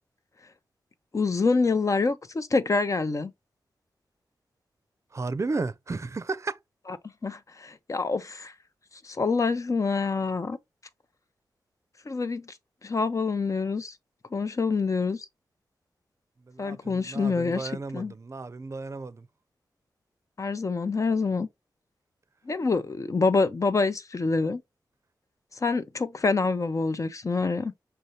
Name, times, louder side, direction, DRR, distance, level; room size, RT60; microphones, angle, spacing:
voice 1, 1.1-3.3 7.2-8.5 9.0-10.6 12.1-12.5 12.8-13.9 14.3-15.3 16.6-18.1 20.4-21.5 22.5-24.6 25.6-27.7, left 4 dB, 40° left, 0.7 m, -26 dB
voice 2, 5.1-6.6 16.4-19.3, right 3 dB, 40° right, 0.5 m, -33 dB
5.7 x 2.7 x 3.0 m
cardioid pair, 55°, 8 cm